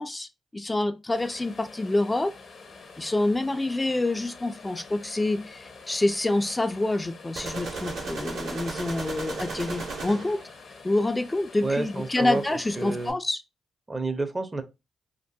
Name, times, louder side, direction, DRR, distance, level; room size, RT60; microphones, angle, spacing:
voice 1, 0.0-2.3 3.0-10.4 10.8-13.4, left 2 dB, 25° left, 0.3 m, -27 dB
sound 1, 1.1-13.1, left 4 dB, 65° left, 0.8 m, -47 dB
sound 2, 7.4-10.5, right 3 dB, 85° right, 1.2 m, -35 dB
voice 2, 11.6-13.1 13.9-14.6, right 3 dB, 30° right, 0.6 m, -29 dB
2.6 x 2.5 x 2.2 m
supercardioid pair, 45°, 0 cm